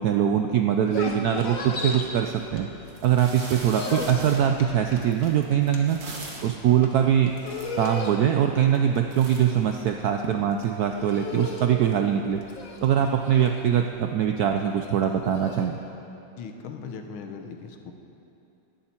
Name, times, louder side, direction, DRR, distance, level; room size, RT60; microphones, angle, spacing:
voice 1, 0.0-2.7 3.0-6.0 6.4-7.3 7.8-12.4 12.8-15.8, right 9 dB, 75° right, 4 dB, 0.8 m, -22 dB
sound 1, 0.7-3.1 3.4-15.7, left 3 dB, 45° left, 1.5 m, -36 dB
sound 2, 2.4-2.5 2.9-6.6 7.2-7.3 7.4-8.1 8.6-8.9 9.1-10.3, right 3 dB, 50° right, 2.0 m, -41 dB
voice 2, 16.4-17.9, left 5 dB, 80° left, 5 dB, 1.8 m, -38 dB
18.0 x 11.5 x 4.4 m, 2.9 s
omnidirectional pair, 2.2 m